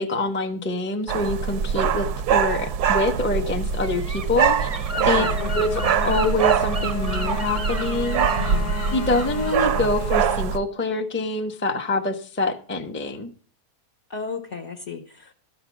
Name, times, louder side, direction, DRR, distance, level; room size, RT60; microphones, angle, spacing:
voice 1, 0.0-5.3 5.5-8.3 8.9-13.3, left 2 dB, 10° left, 0.6 m, -25 dB
sound 1, 1.1-10.6, right 7 dB, 80° right, 1.2 m, -24 dB
Gull seagull, 3.8-9.6, right 3 dB, 35° right, 0.6 m, -33 dB
Wind instrument woodwind instrument, 4.9-10.6, left 9 dB, 70° left, 1.1 m, -34 dB
voice 2, 4.9-5.5 8.4-8.7 14.1-15.3, left 5 dB, 55° left, 1.1 m, -34 dB
13.0 x 5.2 x 7.1 m
omnidirectional pair, 1.7 m